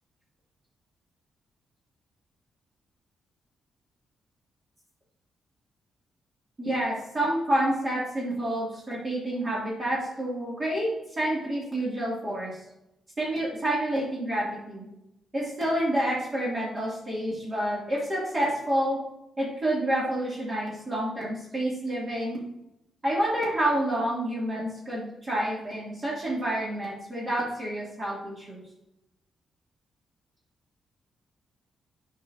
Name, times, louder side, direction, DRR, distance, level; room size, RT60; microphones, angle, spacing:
voice 1, 6.6-12.6 13.2-14.9 15.3-19.0 19.4-22.4 23.0-28.6, right 1 dB, 30° right, -5 dB, 2.5 m, -28 dB
8.6 x 5.1 x 2.7 m, 0.89 s
cardioid pair, 100°, 0 cm